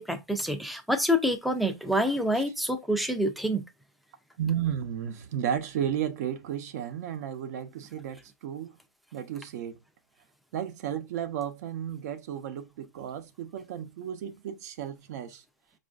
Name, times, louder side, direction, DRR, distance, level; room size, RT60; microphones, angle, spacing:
voice 1, 0.0-3.6, equal, ahead, 0.4 m, -27 dB
voice 2, 4.4-8.7 9.1-9.8 10.5-15.4, right 9 dB, 60° right, 0.7 m, -33 dB
5.2 x 2.4 x 2.3 m
hypercardioid pair, 145°, 10 cm